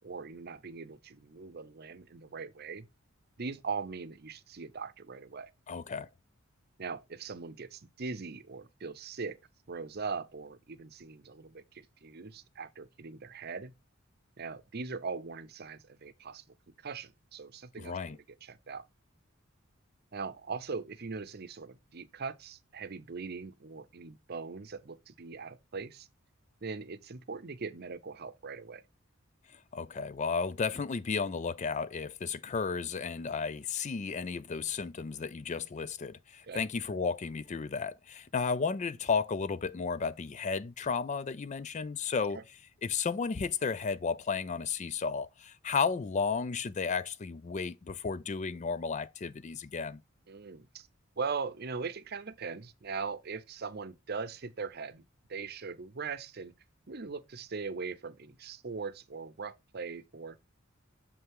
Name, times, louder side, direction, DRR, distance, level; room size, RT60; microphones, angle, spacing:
voice 1, 0.0-2.9 3.4-5.5 6.8-9.4 9.7-13.7 14.4-18.8 20.1-26.1 26.6-28.8 36.5-36.6 42.3-42.4 50.3-50.9 51.2-55.0 55.3-56.5 56.9-60.4, right 4 dB, 50° right, 0.7 m, -40 dB
voice 2, 5.7-6.1 17.8-18.2 29.5-42.4 42.8-50.0, left 5 dB, 35° left, 0.4 m, -33 dB
6.7 x 5.6 x 3.6 m
head